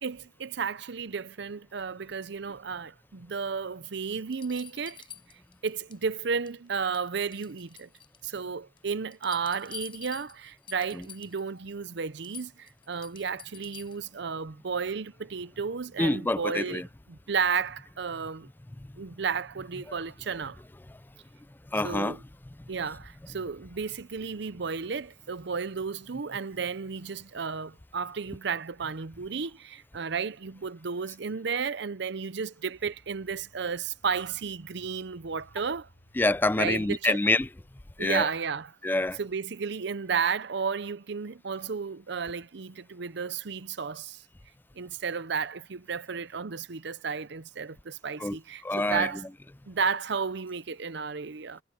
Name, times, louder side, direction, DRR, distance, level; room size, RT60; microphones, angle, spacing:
voice 1, 0.0-5.0 5.6-7.9 8.2-18.5 19.0-20.6 21.8-22.2 22.7-35.9 36.6-37.2 38.0-38.7 39.2-44.2 44.8-49.2 49.7-51.6, right 5 dB, 65° right, 0.7 m, -33 dB
sound 1, 3.6-3.7 4.3-6.0 6.3-6.7 6.9-8.4 8.8-11.5 11.8-11.9 12.2-14.1 15.8-15.9, left 8 dB, 30° left, 5.3 m, -48 dB
voice 2, 16.0-16.9 21.7-22.1 36.2-37.5 38.0-38.3 38.8-39.2 48.2-48.4 48.6-49.1, left 2 dB, 10° left, 0.4 m, -26 dB
sound 2, 32.7-38.7, equal, 90° left, 7.2 m, -61 dB
head